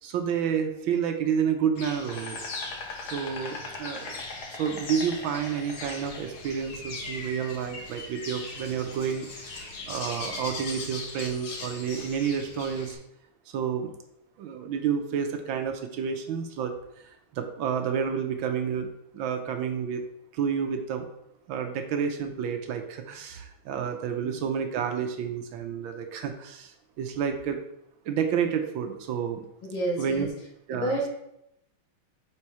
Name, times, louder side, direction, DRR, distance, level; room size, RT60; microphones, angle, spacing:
voice 1, 0.0-2.4 3.1-4.1 4.6-13.0 13.5-13.9 14.4-16.7 17.3-18.9 19.1-20.1 20.3-21.1 21.5-27.6 28.0-29.4 30.0-30.3 30.7-31.0, right 7 dB, 75° right, 6 dB, 1.4 m, -30 dB
Insect, 1.7-12.9, left 3 dB, 55° left, 1.4 m, -39 dB
voice 2, 29.6-30.3 30.7-31.1, right 1 dB, 75° left, -3 dB, 2.6 m, -29 dB
6.2 x 4.3 x 4.7 m, 0.80 s
omnidirectional pair, 2.3 m